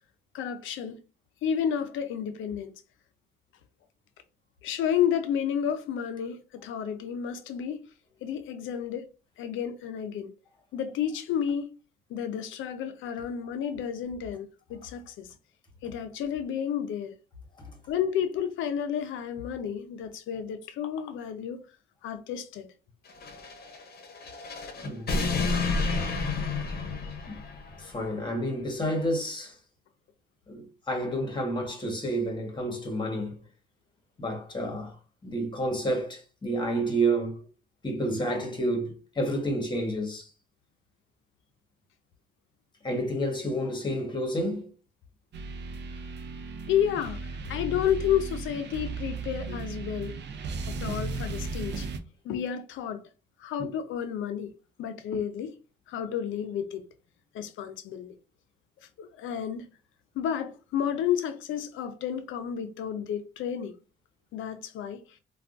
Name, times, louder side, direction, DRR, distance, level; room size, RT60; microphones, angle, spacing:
voice 1, 0.3-1.0 1.4-2.7 4.6-7.8 8.2-9.1 9.4-10.3 10.7-11.7 12.1-15.3 15.8-17.1 17.9-21.6 22.0-22.7 46.7-50.2 50.8-51.9 52.2-53.0 53.4-54.5 54.8-55.6 55.9-56.8 57.3-58.1 59.0-59.7 60.1-63.7 64.3-65.0, left 9 dB, 80° left, 0.5 m, -31 dB
sound 1, 23.1-27.9, left 3 dB, 50° left, 0.8 m, -30 dB
voice 2, 24.8-25.1 27.3-27.4 27.8-29.5 30.5-33.4 34.2-34.9 35.2-37.4 37.8-40.3 42.8-44.7 50.7-50.9 53.6-53.7, right 1 dB, 25° left, 1.3 m, -30 dB
sound 2, 45.3-52.0, right 3 dB, 60° right, 0.5 m, -36 dB
3.4 x 2.3 x 2.5 m
cardioid pair, 90°, 20 cm